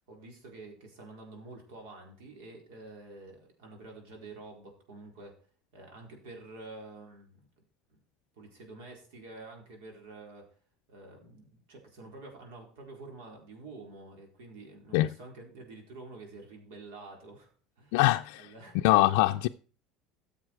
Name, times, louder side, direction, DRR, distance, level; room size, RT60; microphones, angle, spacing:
voice 1, 0.1-5.4 5.7-7.5 7.9-8.0 8.4-10.4 10.9-17.5 17.8-18.0 18.4-19.1, right 2 dB, 85° right, 4.3 m, -48 dB
voice 2, 17.9-18.5 18.8-19.5, left 18 dB, 75° left, 0.4 m, -23 dB
14.0 x 7.2 x 4.7 m
cardioid pair, 150°, 0 cm